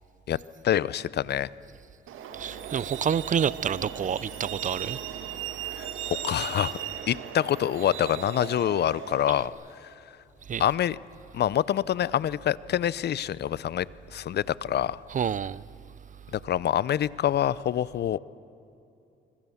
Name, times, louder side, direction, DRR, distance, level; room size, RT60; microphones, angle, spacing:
voice 1, 0.6-1.5 5.7-6.8 7.1-9.5 9.8-9.9 10.6-11.0 11.3-15.0 16.3-18.2, left 11 dB, 55° left, 0.6 m, -26 dB
Truck, 2.1-9.5, right 10 dB, 85° right, 1.9 m, -37 dB
voice 2, 2.3-5.0 10.5-10.6 15.1-15.6, right 8 dB, 40° right, 0.5 m, -28 dB
25.5 x 25.0 x 7.1 m
cardioid pair, 90°, 20 cm